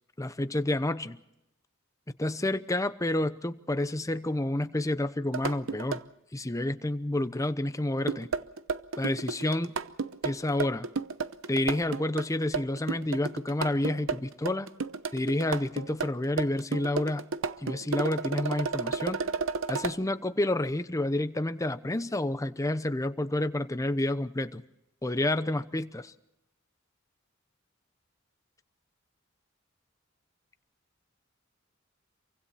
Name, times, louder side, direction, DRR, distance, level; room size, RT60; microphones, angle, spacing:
voice 1, 0.2-1.2 2.2-6.0 6.3-8.3 9.0-9.8 10.2-10.9 11.5-14.7 15.1-17.2 17.6-19.2 19.7-24.6 25.0-26.1, left 1 dB, 15° left, 0.8 m, -29 dB
sound 1, 5.3-6.0 8.0-20.0, right 4 dB, 70° right, 0.8 m, -32 dB
28.0 x 24.0 x 4.3 m
head